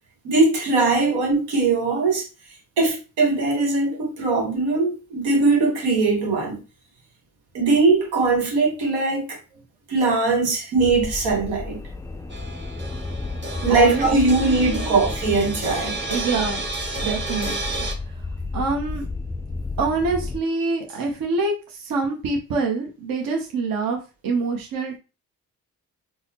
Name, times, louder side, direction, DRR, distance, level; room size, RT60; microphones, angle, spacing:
voice 1, 0.2-2.3 2.8-6.6 7.5-9.4 9.9-11.8 13.6-16.0, right 3 dB, 85° right, 1.1 m, -20 dB
sound 1, 10.8-20.4, left 3 dB, 10° left, 0.3 m, -32 dB
sound 2, 12.3-17.9, right 3 dB, 30° right, 1.0 m, -31 dB
voice 2, 13.7-14.1 14.4-15.0 16.1-16.6 16.9-18.2 18.5-19.1 19.8-25.0, right 3 dB, 60° right, 0.8 m, -26 dB
3.9 x 2.0 x 2.8 m
supercardioid pair, 55°, 39 cm